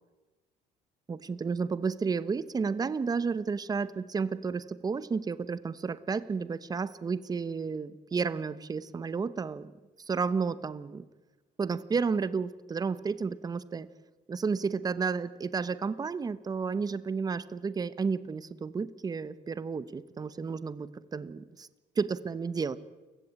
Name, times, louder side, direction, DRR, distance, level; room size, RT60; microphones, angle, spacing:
voice 1, 1.1-9.7 10.1-11.1 11.6-13.9 14.3-21.7 22.0-22.8, right 5 dB, 20° right, 16 dB, 1.0 m, -32 dB
29.5 x 16.5 x 8.8 m, 1.2 s
cardioid pair, 135°, 18 cm